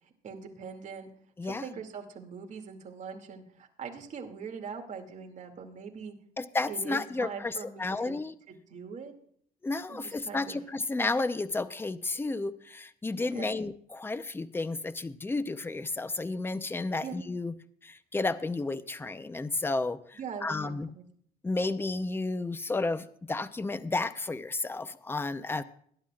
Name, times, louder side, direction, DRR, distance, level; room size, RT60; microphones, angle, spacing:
voice 1, 0.2-1.1 1.4-6.1 6.7-8.2 8.5-9.1 9.9-10.6 13.3-13.6 17.0-17.2 20.1-21.0, right 6 dB, 45° right, 3 dB, 2.5 m, -42 dB
voice 2, 6.4-8.3 9.6-17.5 17.8-20.0 20.4-20.9 21.4-25.6, left 3 dB, 15° left, 13 dB, 0.7 m, -32 dB
21.5 x 11.0 x 2.4 m, 0.62 s
cardioid pair, 110°, 17 cm